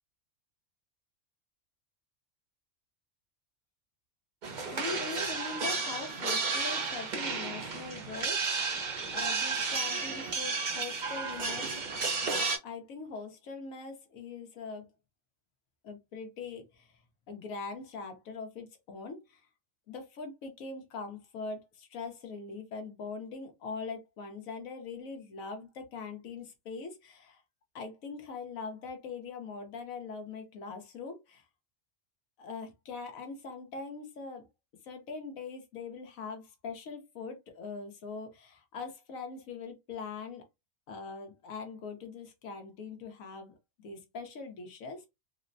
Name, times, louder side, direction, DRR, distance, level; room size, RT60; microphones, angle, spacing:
sound 1, 4.4-12.6, right 4 dB, 45° right, 0.6 m, -32 dB
voice 1, 4.7-8.8 9.1-11.8 12.6-14.9 15.8-16.9 17.3-19.4 19.9-27.4 27.7-31.4 32.4-34.4 34.8-40.4 40.9-45.1, left 4 dB, 80° left, 1.3 m, -42 dB
3.7 x 2.1 x 2.5 m
omnidirectional pair, 1.4 m